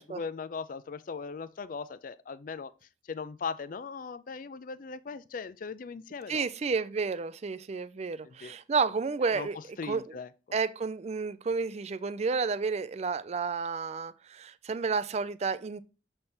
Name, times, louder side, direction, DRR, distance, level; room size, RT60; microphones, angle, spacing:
voice 1, 0.0-2.7 3.0-6.4 8.2-8.5 9.3-10.3, left 5 dB, 50° left, 0.4 m, -39 dB
voice 2, 6.3-9.6 9.9-10.0 10.5-15.8, right 4 dB, 35° right, 0.4 m, -31 dB
6.9 x 3.3 x 4.3 m
head